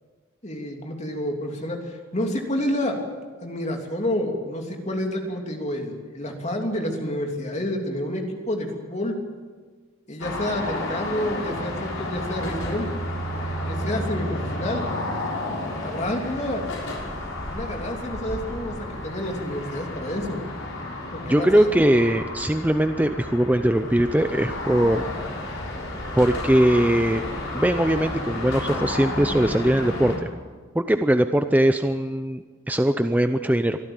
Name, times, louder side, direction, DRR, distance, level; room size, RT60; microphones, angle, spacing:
voice 1, 0.4-3.0 3.4-9.2 10.1-12.9 13.7-14.9 15.4-15.5 15.8-16.7 17.4-20.4 21.1-21.7, left 1 dB, 35° left, 2 dB, 3.0 m, -29 dB
sound 1, 10.2-30.2, left 1 dB, 75° left, 6.3 m, -31 dB
voice 2, 21.3-25.0 26.2-27.2 27.5-30.3 30.7-33.8, right 1 dB, 10° right, 8 dB, 0.6 m, -21 dB
24.0 x 13.5 x 9.0 m, 1.5 s
head